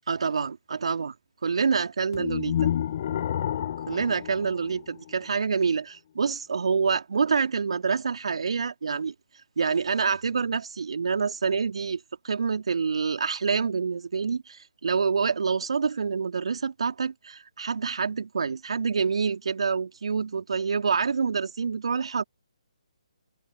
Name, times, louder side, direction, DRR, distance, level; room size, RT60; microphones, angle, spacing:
voice 1, 0.1-1.1 1.4-2.5 3.9-9.1 9.6-22.2, right 5 dB, 60° right, 3.1 m, -27 dB
sound 1, 2.1-5.3, left 10 dB, 40° left, 0.7 m, -30 dB
figure-of-eight pair, 145°, 3 cm